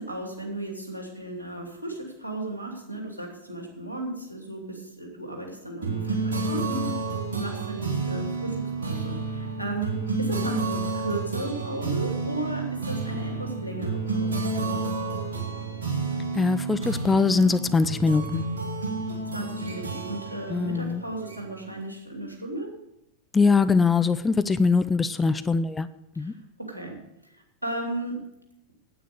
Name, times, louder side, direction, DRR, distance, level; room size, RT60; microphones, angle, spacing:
voice 1, 0.0-14.8 19.3-22.7 26.1-26.3 26.7-27.0 27.3-28.1, right 2 dB, 85° right, 2 dB, 2.7 m, -35 dB
sound 1, 5.8-21.7, right 3 dB, 65° right, 2.5 m, -30 dB
voice 2, 16.3-18.4 20.5-21.0 23.3-25.9 26.2-26.3, left 4 dB, 15° left, 12 dB, 0.5 m, -22 dB
9.4 x 8.8 x 6.8 m, 0.86 s
figure-of-eight pair, 90°, 0 cm